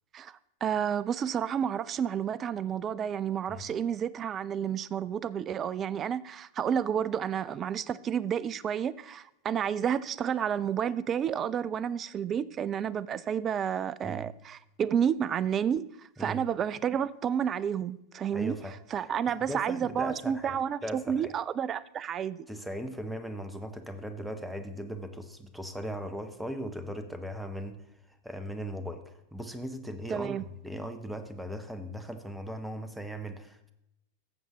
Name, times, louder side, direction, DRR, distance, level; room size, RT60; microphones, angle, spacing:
voice 1, 0.1-15.9 16.2-18.6 18.9-22.5 30.1-30.4, right 8 dB, 25° right, 0.3 m, -30 dB
voice 2, 18.3-19.1 19.4-20.6 20.8-21.3 22.5-33.7, equal, 5° right, 0.8 m, -38 dB
14.0 x 7.2 x 3.0 m
figure-of-eight pair, 90°, 0 cm